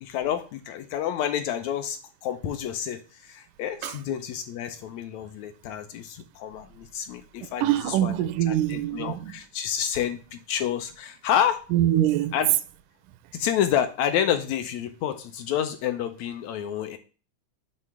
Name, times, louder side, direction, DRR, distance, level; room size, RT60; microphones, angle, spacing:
voice 1, 0.0-8.1 8.5-11.6 12.3-12.5 13.3-17.0, left 9 dB, 75° left, 1.7 m, -29 dB
voice 2, 7.6-9.3 11.7-12.3, right 12 dB, 90° right, 2.1 m, -24 dB
7.7 x 3.2 x 6.0 m
omnidirectional pair, 3.6 m